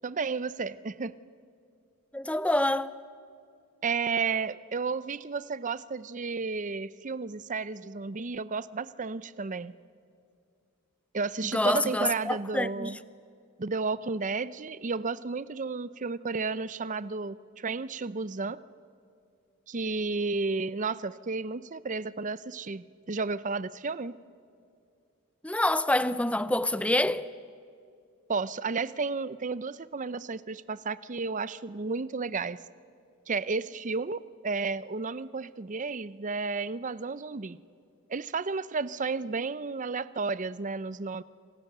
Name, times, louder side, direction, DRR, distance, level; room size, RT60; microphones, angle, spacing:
voice 1, 0.0-1.1 3.8-9.7 11.1-13.0 13.6-18.6 19.7-24.2 28.3-32.6 33.3-37.6 38.1-41.2, right 4 dB, 35° right, 0.6 m, -32 dB
voice 2, 2.1-2.9 11.5-12.9 25.4-27.3, left 1 dB, 5° left, 0.6 m, -26 dB
28.0 x 26.0 x 6.8 m
head